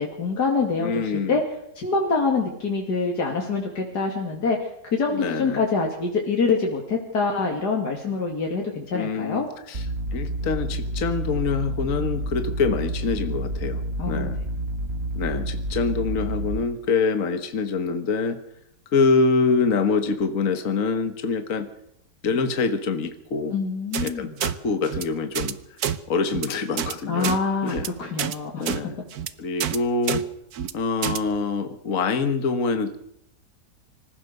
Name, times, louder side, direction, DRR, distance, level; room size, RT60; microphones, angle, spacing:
voice 1, 0.0-1.4 1.8-9.5 14.0-14.3 23.5-24.3 27.1-28.8, left 4 dB, 85° left, 0 dB, 3.2 m, -25 dB
voice 2, 0.8-1.4 5.1-5.6 8.9-9.9 10.1-13.8 14.1-14.4 15.2-18.4 18.9-21.7 22.2-23.6 24.0-25.6 26.1-27.3 27.6-27.9 28.6-29.0 29.4-30.3 30.7-33.0, left 4 dB, 55° left, 8 dB, 1.7 m, -25 dB
sound 1, 9.7-16.6, right 1 dB, 45° right, 1.5 m, -29 dB
sound 2, 23.9-24.1 24.4-24.5 24.9-25.0 25.4-25.5 25.8-26.0 26.3-26.5 26.8-26.9 27.2-27.4 27.7-27.9 28.2-28.4 28.7-28.8 29.1-29.3 29.6-29.8 30.1-30.2 30.5-30.7 31.0-31.2, right 9 dB, 70° right, 1.5 m, -27 dB
25.5 x 15.5 x 6.6 m, 0.76 s
omnidirectional pair, 1.7 m